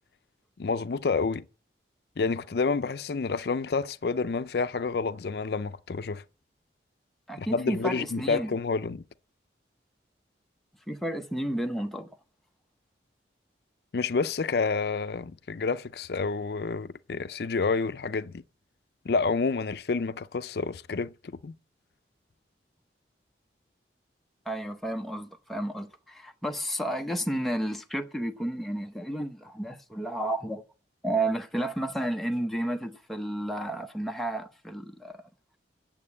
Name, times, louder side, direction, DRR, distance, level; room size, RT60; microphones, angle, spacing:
voice 1, 0.6-1.4 2.2-6.2 7.4-9.0 13.9-18.4 19.1-21.5, left 4 dB, 65° left, 0.5 m, -29 dB
voice 2, 7.3-8.5 10.9-12.1 24.5-30.6 31.0-35.2, right 1 dB, ahead, 0.7 m, -32 dB
8.8 x 7.3 x 8.4 m
head